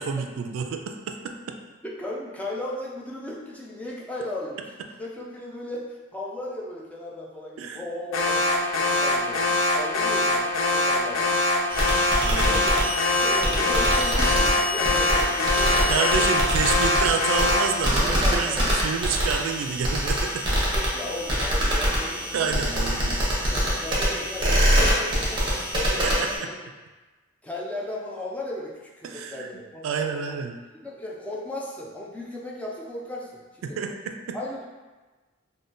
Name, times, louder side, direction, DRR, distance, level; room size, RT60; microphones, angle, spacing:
voice 1, 0.0-1.6 7.6-7.8 12.2-12.6 15.9-18.6 18.8-20.4 22.3-23.3 26.0-26.5 29.0-29.5 29.8-30.6 33.6-34.4, right 6 dB, 90° right, 7 dB, 0.3 m, -29 dB
voice 2, 1.8-11.3 12.4-12.9 13.2-16.3 18.0-18.8 20.7-22.4 22.7-22.8 23.5-26.5 27.4-29.8 30.8-33.8 34.3-34.6, left 1 dB, 5° left, -4 dB, 0.4 m, -36 dB
Alarm, 8.1-17.8, left 2 dB, 70° left, 0.4 m, -23 dB
sound 1, 11.7-26.4, equal, 25° right, 0.8 m, -25 dB
3.5 x 2.1 x 2.5 m, 1.2 s
head